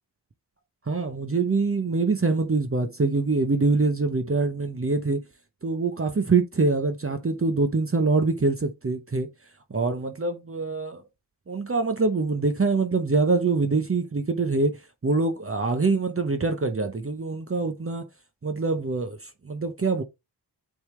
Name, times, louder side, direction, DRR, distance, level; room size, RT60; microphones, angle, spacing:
voice 1, 0.9-5.2 5.6-9.3 9.7-11.0 11.5-18.1 18.4-20.0, right 3 dB, 30° right, 0.8 m, -24 dB
7.8 x 3.7 x 3.2 m
wide cardioid pair, 70°, 42 cm